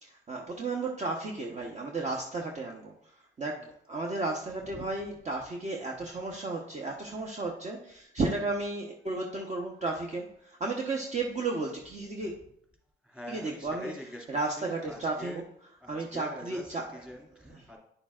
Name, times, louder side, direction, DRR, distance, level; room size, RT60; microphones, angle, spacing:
voice 1, 0.0-12.4 13.3-13.9 14.3-15.4 15.9-17.0 17.5-17.6, right 3 dB, 35° right, 0 dB, 1.0 m, -34 dB
voice 2, 4.6-4.9 13.0-15.5 15.8-17.8, left 1 dB, 5° right, -1 dB, 2.3 m, -45 dB
9.8 x 7.0 x 2.4 m, 0.70 s
cardioid pair, 90°, 20 cm